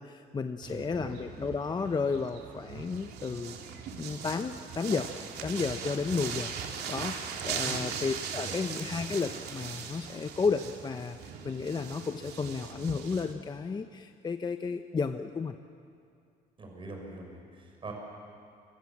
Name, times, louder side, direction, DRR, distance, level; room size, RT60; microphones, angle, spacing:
voice 1, 0.0-3.6 4.0-6.5 6.9-11.2 11.4-15.6, left 5 dB, 25° left, 8 dB, 0.9 m, -32 dB
sound 1, 0.6-13.3, right 7 dB, 75° right, 2.7 m, -39 dB
voice 2, 0.7-1.1 7.6-7.8 8.4-8.6 16.6-17.9, right 2 dB, 30° right, 1 dB, 6.0 m, -43 dB
29.0 x 24.0 x 7.4 m, 2.4 s
cardioid pair, 110°, 17 cm